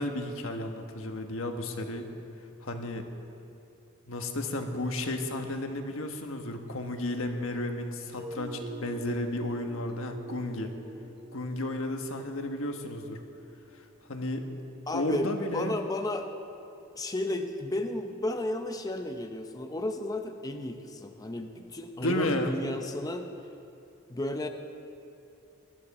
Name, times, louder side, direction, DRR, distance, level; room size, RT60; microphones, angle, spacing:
voice 1, 0.0-2.1 2.6-3.0 4.1-10.7 11.3-13.2 14.1-14.4 14.9-15.8 22.0-22.6, left 1 dB, 90° left, 4 dB, 1.3 m, -33 dB
sound 1, 8.2-14.0, right 2 dB, 50° right, 2.0 m, -44 dB
voice 2, 14.9-16.3 16.9-23.3 24.1-24.5, left 1 dB, 20° left, 5 dB, 0.7 m, -33 dB
20.0 x 13.5 x 4.2 m, 2.8 s
head